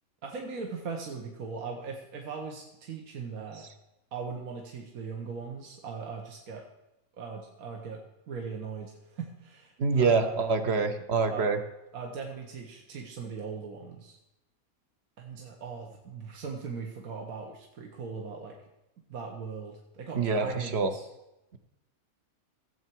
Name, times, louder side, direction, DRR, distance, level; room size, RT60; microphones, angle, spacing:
voice 1, 0.2-3.7 4.1-6.6 7.2-8.0 8.3-10.5 11.3-11.5 11.9-14.2 15.2-18.6 19.1-21.1, right 5 dB, 75° right, 1 dB, 1.6 m, -39 dB
voice 2, 9.8-11.6 20.1-20.9, right 4 dB, 50° right, 8 dB, 1.0 m, -26 dB
15.5 x 7.8 x 4.6 m, 0.94 s
omnidirectional pair, 1.5 m